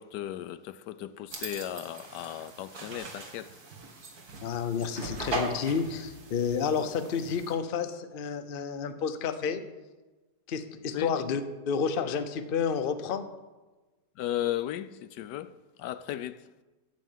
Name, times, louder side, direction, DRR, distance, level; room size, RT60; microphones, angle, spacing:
voice 1, 0.0-3.5 10.9-11.1 14.2-15.5 15.8-16.4, left 12 dB, 80° left, 1.2 m, -35 dB
sound 1, 1.3-7.5, right 2 dB, 60° right, 2.2 m, -40 dB
voice 2, 4.4-9.6 10.5-13.3, left 6 dB, 45° left, 0.7 m, -30 dB
10.5 x 8.9 x 7.4 m
omnidirectional pair, 1.8 m